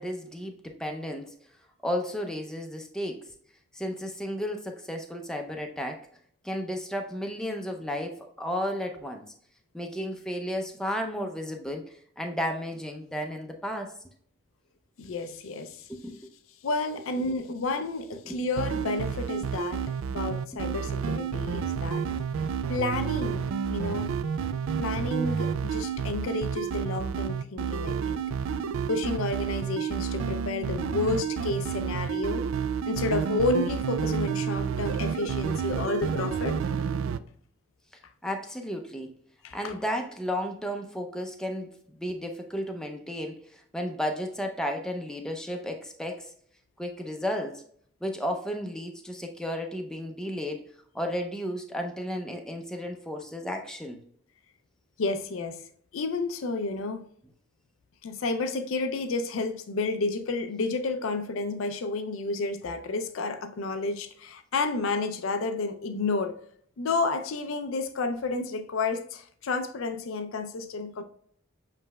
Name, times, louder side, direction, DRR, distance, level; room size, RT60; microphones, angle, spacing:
voice 1, 0.0-1.3 1.8-3.3 3.7-6.1 6.4-9.2 9.7-14.0 15.9-16.3 17.2-17.4 18.2-18.4 20.8-20.9 21.4-21.6 38.2-39.1 39.5-46.3 46.8-47.6 48.0-50.7 50.9-54.0, equal, 5° left, 0.5 m, -33 dB
voice 2, 15.0-15.9 16.6-19.8 20.1-22.1 22.7-24.1 24.8-28.2 28.9-32.4 32.9-37.0 39.4-39.7 55.0-55.6 55.9-57.0 58.0-66.4 66.8-71.0, left 3 dB, 80° left, 0.5 m, -31 dB
sound 1, 18.6-37.2, right 7 dB, 80° right, 0.3 m, -30 dB
7.2 x 3.2 x 2.2 m
head